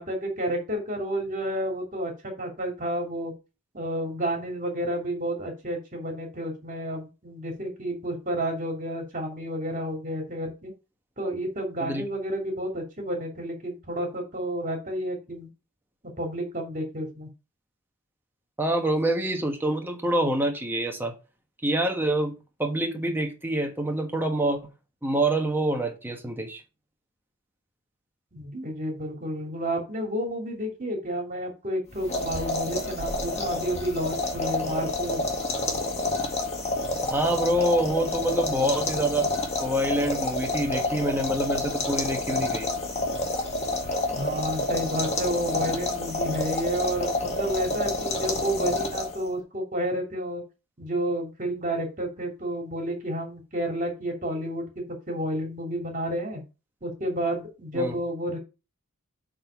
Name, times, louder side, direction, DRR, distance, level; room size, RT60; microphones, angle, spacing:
voice 1, 0.0-3.3 3.7-10.7 11.2-15.5 16.2-17.3 28.3-35.2 44.1-50.4 50.8-56.4 56.8-58.4, right 1 dB, 40° right, 2.7 m, -30 dB
voice 2, 18.6-21.1 21.6-22.3 22.6-24.6 25.0-26.6 37.1-39.3 39.6-42.7 57.7-58.0, right 1 dB, 10° right, 1.3 m, -26 dB
sound 1, 31.9-49.3, left 2 dB, 30° left, 1.9 m, -29 dB
7.8 x 4.0 x 5.6 m
head